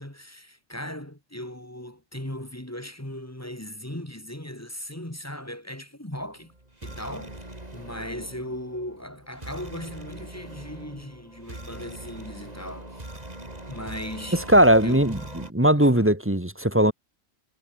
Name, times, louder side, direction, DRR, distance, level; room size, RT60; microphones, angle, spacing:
voice 1, 0.0-6.5 6.8-7.4 7.7-13.0 13.7-14.5 14.8-15.1 15.8-16.1, left 1 dB, 10° left, 2.8 m, -38 dB
sound 1, 6.2-15.5, right 1 dB, 35° right, 4.4 m, -41 dB
voice 2, 14.3-16.9, right 1 dB, 10° right, 1.8 m, -19 dB
omnidirectional pair, 1.2 m